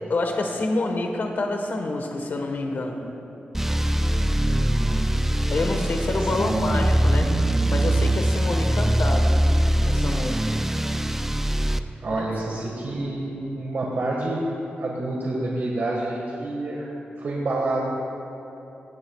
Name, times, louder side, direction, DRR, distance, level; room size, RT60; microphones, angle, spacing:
voice 1, 0.1-3.1 5.5-7.3 7.7-9.4 9.8-10.5 12.1-12.3, left 2 dB, 60° left, 3 dB, 1.3 m, -27 dB
sound 1, 3.5-11.8, right 1 dB, 10° right, 0.4 m, -22 dB
voice 2, 4.1-5.0 6.2-6.7 12.0-14.5 14.8-17.8, right 2 dB, 65° right, -3 dB, 1.6 m, -28 dB
17.0 x 17.0 x 2.4 m, 3.0 s
wide cardioid pair, 105°, 4 cm